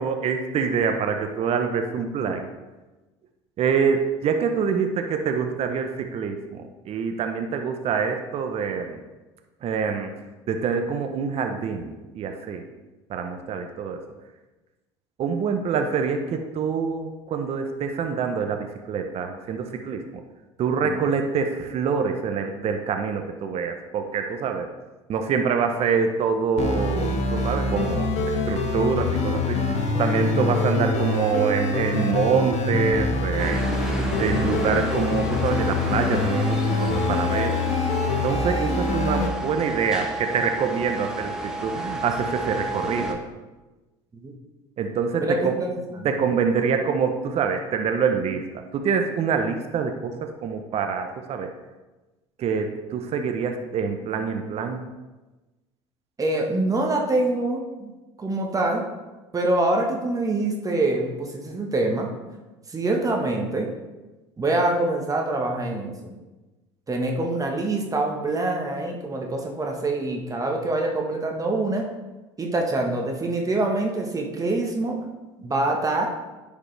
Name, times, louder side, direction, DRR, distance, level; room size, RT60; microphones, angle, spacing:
voice 1, 0.0-2.5 3.6-9.0 9.6-10.1 10.5-12.6 13.1-14.0 15.2-20.0 20.6-24.7 25.1-29.7 30.0-33.7 34.2-37.6 38.2-43.2 44.8-45.6 46.0-51.5 52.4-54.8, right 6 dB, 45° right, 5 dB, 0.8 m, -25 dB
sound 1, 26.6-39.3, left 3 dB, 50° left, 1.4 m, -25 dB
sound 2, 33.4-43.1, right 1 dB, 5° right, 1.2 m, -31 dB
voice 2, 45.2-46.1 56.2-57.9 58.2-58.9 59.3-62.1 62.7-63.7 64.4-66.1 66.9-71.9 72.4-75.0 75.4-76.1, right 2 dB, 25° right, 1 dB, 1.4 m, -25 dB
9.8 x 5.1 x 3.3 m, 1.1 s
hypercardioid pair, 80°, 14 cm